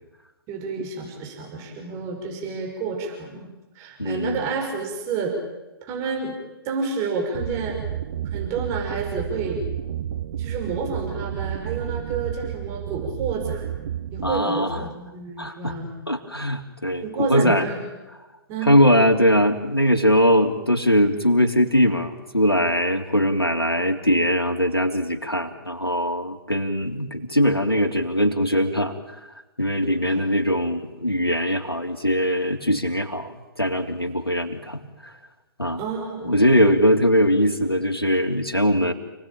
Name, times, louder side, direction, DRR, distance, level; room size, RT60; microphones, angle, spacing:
voice 1, 0.5-3.5 3.7-5.3 5.8-6.3 6.6-7.8 8.3-9.6 10.4-13.6 14.1-15.9 17.0-17.9 18.5-18.8 30.0-30.2 35.8-36.3, right 4 dB, 25° right, 1 dB, 6.2 m, -29 dB
voice 2, 4.0-4.4 14.2-14.8 15.4-15.7 16.1-17.7 18.6-29.2 29.6-35.1 35.6-35.8 36.2-38.9, equal, 90° left, 3 dB, 3.2 m, -21 dB
sound 1, 7.3-14.4, right 10 dB, 50° right, 1.3 m, -31 dB
29.5 x 19.0 x 9.0 m, 1.1 s
figure-of-eight pair, 125°, 12 cm